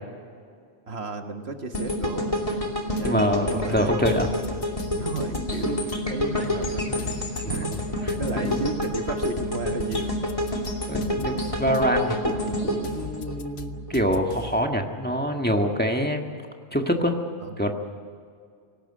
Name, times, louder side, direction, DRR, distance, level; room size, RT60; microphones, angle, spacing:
voice 1, 0.9-2.6 2.9-3.9 5.0-7.0 7.5-10.2 11.1-11.5 17.4-17.6, right 4 dB, 65° right, 5 dB, 1.7 m, -34 dB
sound 1, 1.7-13.9 14.3-14.5, left 1 dB, 30° left, 2.8 m, -28 dB
sound 2, 3.0-3.1 3.5-6.0 6.4-8.9 9.4-11.8 12.3-14.7, left 6 dB, 65° left, 1.2 m, -39 dB
voice 2, 3.0-4.3 8.3-8.6 10.9-16.3 16.7-17.2 17.6-17.7, equal, 10° left, 3 dB, 1.6 m, -25 dB
18.5 x 17.5 x 9.9 m, 2.2 s
omnidirectional pair, 1.1 m